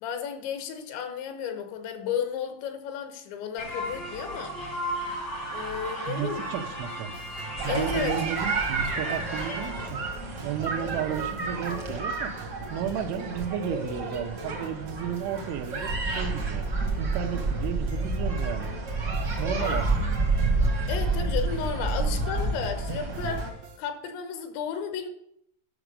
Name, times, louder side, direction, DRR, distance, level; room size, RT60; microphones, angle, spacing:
voice 1, 0.0-4.6 5.5-6.5 7.7-8.2 19.6-19.8 20.9-23.5 23.8-25.1, left 7 dB, 80° left, 3.3 m, -33 dB
sound 1, 3.6-9.9, equal, 50° left, 1.0 m, -35 dB
voice 2, 6.1-7.1 7.6-10.0 10.4-12.3 12.7-16.7 17.0-18.7 19.4-20.2, right 8 dB, 85° right, 3.4 m, -33 dB
sound 2, 7.1-23.8, right 4 dB, 70° right, 1.5 m, -46 dB
sound 3, 7.6-23.5, right 3 dB, 50° right, 1.2 m, -29 dB
11.0 x 6.2 x 6.7 m
omnidirectional pair, 5.4 m